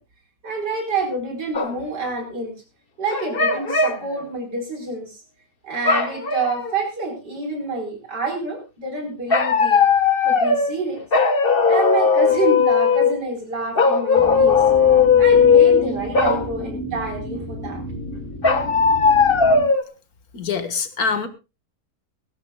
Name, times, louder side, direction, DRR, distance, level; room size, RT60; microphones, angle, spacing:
voice 1, 0.4-2.6 3.0-5.2 5.6-9.8 10.2-11.0 11.7-14.6 15.2-17.8, right 3 dB, 80° right, 4 dB, 5.2 m, -27 dB
sound 1, 1.5-1.8 3.1-4.0 5.8-6.7 9.3-10.8 11.1-13.2 13.8-15.9 16.1-16.4 18.4-19.8, left 5 dB, 35° left, 1.4 m, -17 dB
sound 2, 14.2-19.6, right 1 dB, 10° left, 3.1 m, -32 dB
voice 2, 20.3-21.3, left 5 dB, 60° left, 10 dB, 2.0 m, -24 dB
20.0 x 15.5 x 2.3 m, 0.28 s
omnidirectional pair, 1.8 m